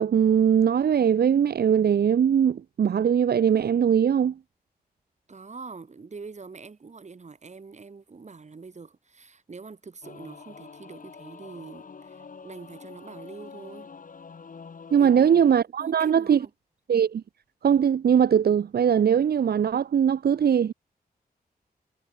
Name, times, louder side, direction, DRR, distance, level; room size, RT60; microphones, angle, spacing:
voice 1, 0.0-4.3 14.9-16.4 16.9-17.2 17.6-20.7, right 8 dB, 75° right, 0.8 m, -21 dB
voice 2, 5.3-13.9 15.0-15.4 15.8-16.5, right 4 dB, 45° right, 7.7 m, -44 dB
Singing / Musical instrument, 10.0-15.6, left 5 dB, 55° left, 4.7 m, -46 dB
wide cardioid pair, 120°, 16 cm